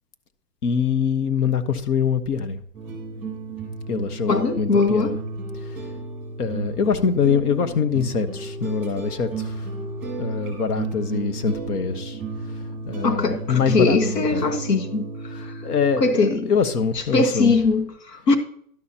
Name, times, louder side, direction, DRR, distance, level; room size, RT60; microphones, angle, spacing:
voice 1, 0.6-2.6 3.9-5.1 5.5-5.9 6.4-9.7 10.2-14.5 15.3-17.6, left 6 dB, 65° left, 1.4 m, -24 dB
sound 1, 2.7-16.3, right 3 dB, ahead, 3.1 m, -33 dB
voice 2, 4.3-5.1 13.0-15.0 15.3-15.5 16.0-16.5 17.1-18.4, left 3 dB, 80° left, 1.7 m, -21 dB
11.5 x 11.0 x 2.9 m
hypercardioid pair, 165°, 48 cm